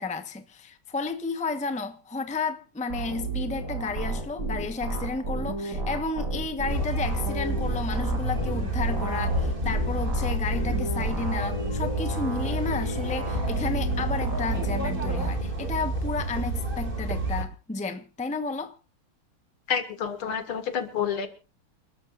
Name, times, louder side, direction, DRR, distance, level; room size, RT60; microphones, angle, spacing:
voice 1, 0.0-18.8, left 3 dB, 5° left, 0.7 m, -32 dB
sound 1, 2.9-15.3, right 2 dB, 50° right, 4.4 m, -32 dB
sound 2, 6.7-17.4, right 1 dB, 25° right, 2.6 m, -29 dB
voice 2, 19.7-21.3, left 7 dB, 85° left, 2.8 m, -29 dB
28.5 x 12.5 x 2.5 m
omnidirectional pair, 2.3 m